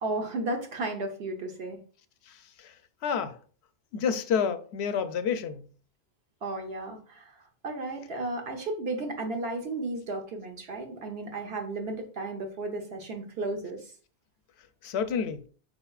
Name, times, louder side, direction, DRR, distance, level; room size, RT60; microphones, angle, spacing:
voice 1, 0.0-1.8 6.4-7.4 7.6-13.9, right 2 dB, 70° right, 1.1 m, -34 dB
voice 2, 2.2-3.4 3.9-5.7 14.6-15.5, left 7 dB, 90° left, 0.8 m, -30 dB
5.2 x 4.1 x 2.3 m
omnidirectional pair, 1.1 m